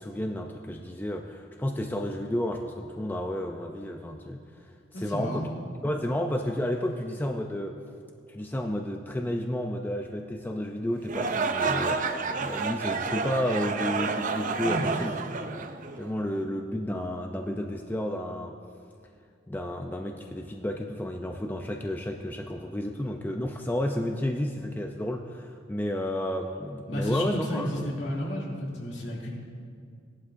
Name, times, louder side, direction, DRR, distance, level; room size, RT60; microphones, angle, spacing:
voice 1, 0.0-4.4 4.9-5.5 5.8-7.8 8.3-15.1 15.5-15.6 16.0-18.5 19.5-27.9, left 1 dB, 10° left, 2 dB, 0.4 m, -31 dB
voice 2, 4.9-5.4 14.6-14.8 26.8-29.3, equal, 65° left, -4 dB, 2.6 m, -32 dB
sound 1, 11.0-16.3, right 4 dB, 45° right, 0.5 m, -30 dB
17.0 x 11.5 x 2.6 m, 2.2 s
head